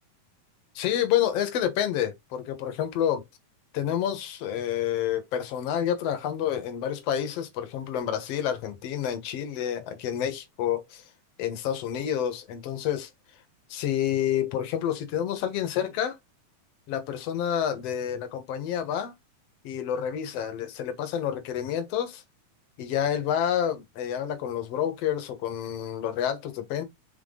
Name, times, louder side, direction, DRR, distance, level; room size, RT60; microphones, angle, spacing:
voice 1, 0.8-3.2 3.7-11.0 11.4-13.1 13.7-16.2 16.9-19.1 19.6-22.2 22.8-26.8, left 10 dB, 60° left, 2.0 m, -29 dB
5.9 x 4.3 x 3.8 m
omnidirectional pair, 3.9 m